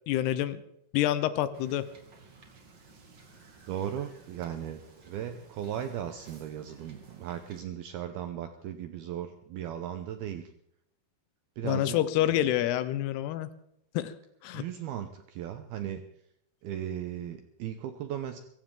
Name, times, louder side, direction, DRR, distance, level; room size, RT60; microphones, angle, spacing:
voice 1, 0.1-0.6 0.9-1.9 11.6-13.5 13.9-14.1 14.4-14.6, left 13 dB, 80° left, 13 dB, 2.3 m, -27 dB
Wind / Boat Water vehicle, 1.5-7.6, right 3 dB, 40° right, 1.6 m, -55 dB
voice 2, 3.7-10.4 11.6-12.0 12.3-12.4 14.5-16.0 16.6-18.4, right 10 dB, 85° right, 8 dB, 2.2 m, -37 dB
23.5 x 15.0 x 3.8 m, 0.75 s
omnidirectional pair, 5.7 m